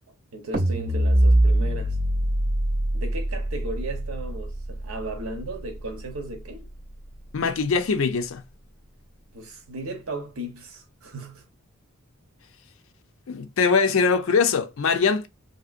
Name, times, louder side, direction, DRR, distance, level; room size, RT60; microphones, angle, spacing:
voice 1, 0.3-2.0 2.9-6.6 9.3-11.4, right 1 dB, 80° right, 0.9 m, -36 dB
sound 1, 0.5-6.8, right 1 dB, 40° right, 0.5 m, -24 dB
voice 2, 7.3-8.4 13.3-15.3, left 5 dB, 65° left, 0.5 m, -22 dB
2.9 x 2.7 x 2.4 m
head